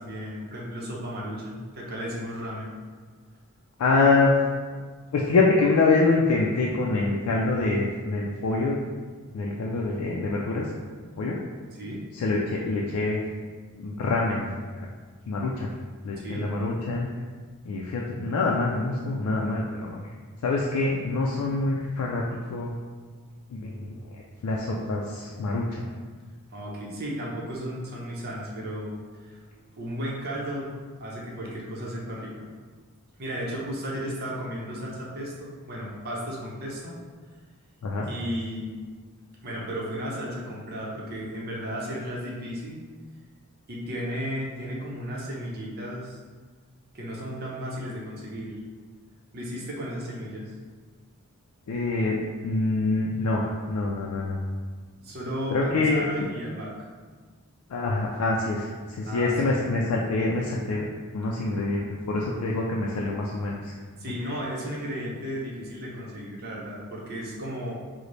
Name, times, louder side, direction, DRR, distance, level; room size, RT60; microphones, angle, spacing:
voice 1, 0.0-2.7 11.8-12.0 16.2-16.5 26.5-28.9 29.2-29.4 29.8-32.5 33.2-37.0 38.1-38.7 39.4-42.8 43.7-46.2 46.9-48.6 49.3-50.5 55.0-56.9 59.0-59.7 64.0-67.7, equal, 45° right, -4 dB, 0.6 m, -34 dB
voice 2, 3.8-4.4 5.1-8.8 9.3-10.7 11.2-11.4 12.1-13.2 13.7-14.9 15.3-15.7 16.0-17.1 17.6-20.1 20.4-22.7 23.5-25.9 37.8-38.1 51.7-54.4 55.5-56.2 57.7-60.9 61.1-63.7, left 3 dB, 90° left, -2 dB, 0.3 m, -25 dB
3.1 x 2.0 x 3.8 m, 1.5 s
head